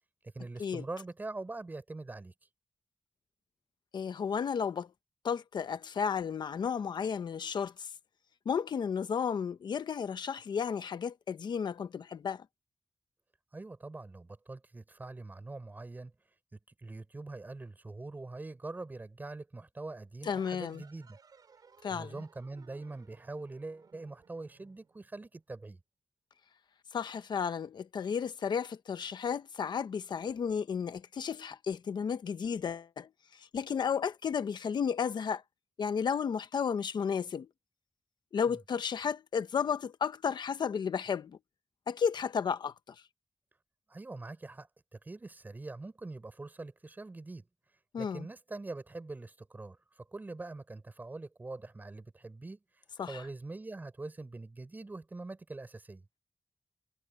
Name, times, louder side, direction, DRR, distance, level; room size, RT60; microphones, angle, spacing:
voice 1, 0.2-2.3 13.5-16.1 16.5-21.2 21.9-25.8 38.5-38.6 43.9-47.5 48.0-52.6 53.0-56.0, right 2 dB, 25° right, 5.1 m, -43 dB
voice 2, 3.9-4.9 5.2-7.9 8.5-12.4 20.2-20.8 21.8-22.1 26.9-35.4 35.8-37.5 38.3-41.3 41.9-42.7 47.9-48.3 53.0-53.2, left 7 dB, 75° left, 0.9 m, -33 dB
sound 1, 20.2-25.5, right 5 dB, 60° right, 4.3 m, -61 dB
wide cardioid pair, 175°, 8 cm